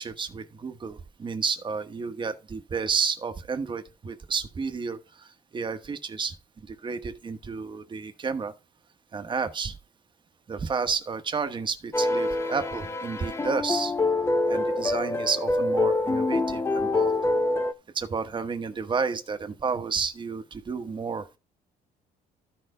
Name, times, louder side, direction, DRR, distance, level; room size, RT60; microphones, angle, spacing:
voice 1, 0.0-8.5 9.1-9.7 10.5-13.9 14.5-17.1 17.9-21.3, right 5 dB, 30° right, 1.1 m, -31 dB
sound 1, 11.9-17.7, left 2 dB, 15° left, 0.8 m, -25 dB
13.0 x 4.5 x 4.9 m
cardioid pair, 110°, 17 cm